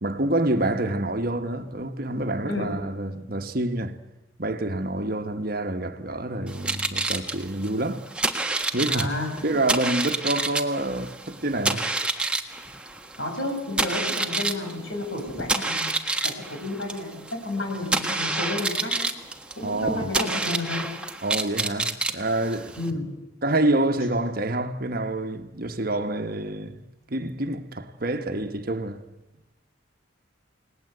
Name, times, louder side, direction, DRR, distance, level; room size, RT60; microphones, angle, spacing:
voice 1, 0.0-4.0 4.4-8.1 8.7-11.9 19.6-20.1 21.2-22.8 23.4-29.0, right 1 dB, 50° right, 1.4 m, -27 dB
sound 1, 6.5-22.9, right 2 dB, 5° right, 1.3 m, -28 dB
voice 2, 8.9-9.3 13.2-15.9 16.2-19.0 19.6-20.9 22.8-23.0, left 2 dB, 75° left, 6.7 m, -31 dB
30.0 x 19.0 x 8.0 m
head